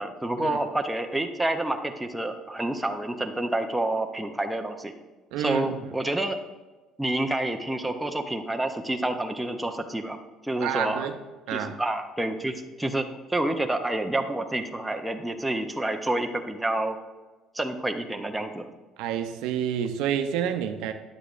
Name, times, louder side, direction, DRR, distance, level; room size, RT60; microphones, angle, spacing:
voice 1, 0.0-4.9 5.4-6.4 7.0-10.2 10.4-11.1 11.5-13.0 13.3-17.0 17.5-18.7, right 1 dB, 5° right, 5 dB, 0.5 m, -28 dB
voice 2, 5.3-5.8 10.6-11.2 11.5-11.8 19.0-20.9, right 9 dB, 80° right, 7 dB, 0.5 m, -28 dB
9.1 x 6.8 x 2.4 m, 1.2 s
cardioid pair, 135°, 0 cm